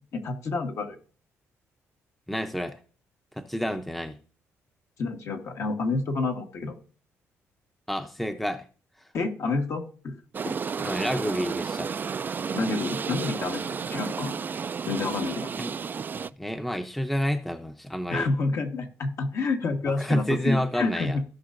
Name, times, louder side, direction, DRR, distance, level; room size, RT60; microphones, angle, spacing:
voice 1, 0.1-1.0 5.0-6.8 9.1-10.1 10.4-10.6 12.5-13.6 13.9-14.3 14.9-15.5 18.1-21.2, left 3 dB, 60° left, 1.5 m, -29 dB
voice 2, 2.3-2.8 3.4-4.2 7.9-8.6 10.8-12.0 15.6-15.7 16.1-18.3 20.0-21.2, equal, 5° left, 0.7 m, -29 dB
sound 1, 10.3-16.3, right 6 dB, 35° right, 0.3 m, -32 dB
16.0 x 5.5 x 2.6 m
cardioid pair, 85°, 6 cm